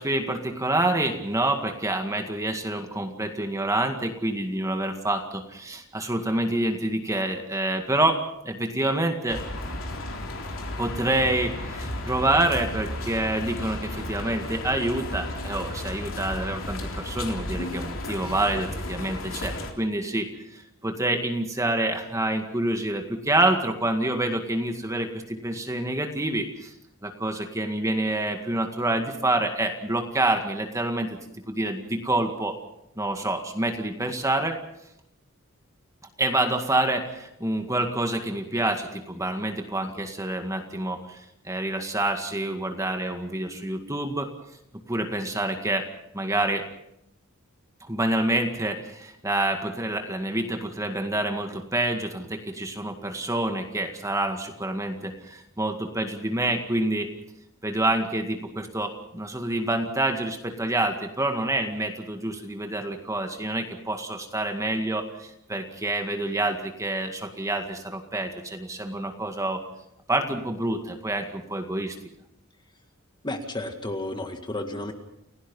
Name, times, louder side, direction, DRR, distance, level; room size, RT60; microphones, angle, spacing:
voice 1, 0.0-9.4 10.8-26.7 27.0-31.2 31.5-32.6 33.0-34.6 36.2-44.3 44.9-45.9 46.1-46.7 47.8-57.1 57.6-69.6 70.1-72.0, right 1 dB, 15° right, 5 dB, 2.0 m, -27 dB
sound 1, 9.3-19.7, left 1 dB, 65° left, 3.6 m, -34 dB
voice 2, 73.2-74.9, left 1 dB, 20° left, 5 dB, 1.9 m, -32 dB
29.5 x 17.0 x 5.5 m, 0.82 s
head